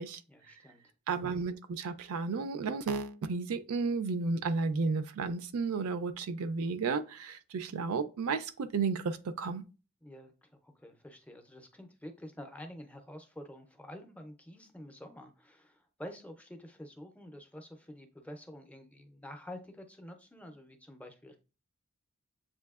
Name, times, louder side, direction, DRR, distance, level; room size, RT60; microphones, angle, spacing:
voice 1, 0.3-0.9 10.0-21.4, left 1 dB, 5° left, 0.5 m, -48 dB
voice 2, 1.1-9.6, right 4 dB, 80° right, 0.4 m, -33 dB
7.3 x 2.7 x 2.3 m
head